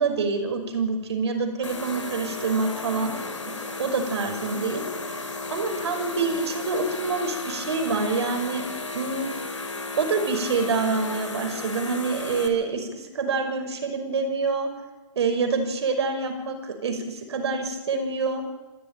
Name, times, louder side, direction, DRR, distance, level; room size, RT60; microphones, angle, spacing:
voice 1, 0.0-3.3 3.8-4.8 5.5-8.6 8.9-9.3 10.0-14.7 15.2-18.4, right 4 dB, 55° right, 6 dB, 5.5 m, -26 dB
sound 1, 1.6-12.5, left 3 dB, 70° left, 3.7 m, -34 dB
28.5 x 14.0 x 9.1 m, 1.2 s
figure-of-eight pair, 115°, 17 cm